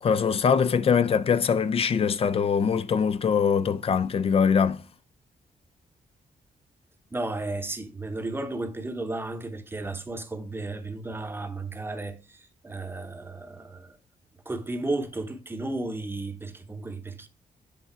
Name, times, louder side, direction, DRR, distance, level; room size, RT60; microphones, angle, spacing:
voice 1, 0.0-4.8, left 6 dB, 40° left, 0.4 m, -23 dB
voice 2, 7.1-14.0 14.5-17.3, right 2 dB, 15° right, 0.8 m, -34 dB
8.2 x 3.8 x 4.3 m
wide cardioid pair, 135°, 14 cm